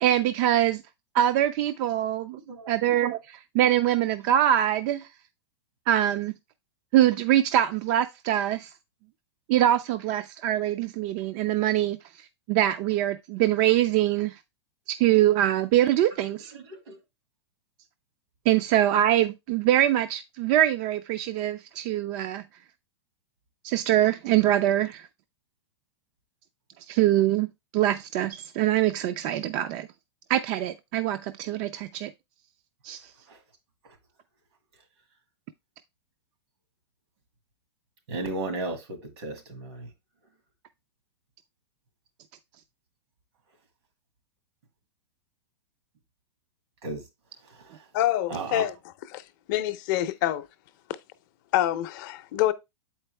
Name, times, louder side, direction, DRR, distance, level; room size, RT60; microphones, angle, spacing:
voice 1, 0.0-0.8 1.1-2.4 2.7-5.1 5.9-6.3 6.9-8.7 9.5-12.0 12.5-14.3 14.9-16.5 18.5-22.4 23.6-25.1 26.9-27.5 27.7-29.9 30.3-32.1 32.8-33.0, right 12 dB, 40° right, 0.4 m, -23 dB
voice 2, 38.1-39.9 46.8-47.0 48.3-48.6, right 3 dB, 80° right, 2.1 m, -34 dB
voice 3, 47.9-48.7 49.1-49.2 49.5-50.5 51.5-52.5, left 13 dB, 45° left, 0.6 m, -26 dB
7.5 x 4.5 x 3.2 m
supercardioid pair, 155°, 14 cm